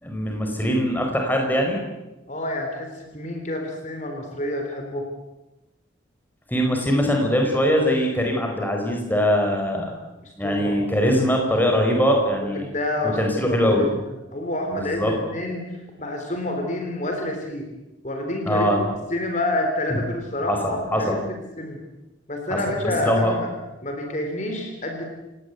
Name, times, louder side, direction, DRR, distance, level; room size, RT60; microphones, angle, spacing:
voice 1, 0.0-1.8 6.5-9.9 10.4-12.6 13.2-13.9 14.8-15.1 18.4-18.8 20.5-21.0 22.5-23.3, equal, 10° left, 1 dB, 4.7 m, -22 dB
voice 2, 2.3-5.1 10.2-10.8 12.5-14.0 14.3-17.7 18.0-21.8 22.3-23.5 23.8-25.0, left 1 dB, 35° left, 3 dB, 3.8 m, -28 dB
29.0 x 18.0 x 8.2 m, 1.0 s
head